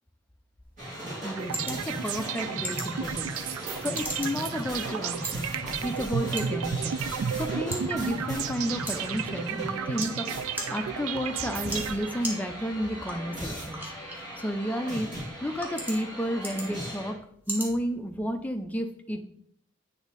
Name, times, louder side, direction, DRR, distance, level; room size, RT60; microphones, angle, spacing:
sound 1, 0.6-18.6, equal, 10° right, 1.1 m, -42 dB
sound 2, 0.8-17.1, equal, 35° right, 2.7 m, -38 dB
voice 1, 1.2-3.3 3.8-5.5 5.8-7.0 7.3-10.3 10.7-13.9 14.4-15.1 15.4-17.2 17.5-19.3, equal, 5° left, 6 dB, 0.4 m, -32 dB
sound 3, 1.4-12.4, right 7 dB, 85° right, 0.4 m, -33 dB
8.2 x 3.5 x 4.0 m, 0.66 s
head